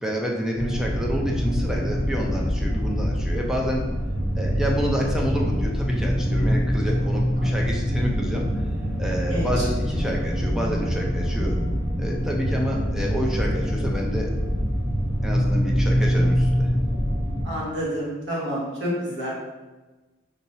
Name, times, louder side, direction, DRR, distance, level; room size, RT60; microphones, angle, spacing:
voice 1, 0.0-3.8 4.3-8.5 9.0-11.6 12.0-14.3 15.2-16.7, equal, 5° right, -1 dB, 0.5 m, -28 dB
sound 1, 0.6-17.4, equal, 35° right, 1.1 m, -24 dB
voice 2, 17.4-19.3, equal, 65° right, -6 dB, 1.4 m, -28 dB
5.4 x 2.9 x 2.7 m, 1.2 s
head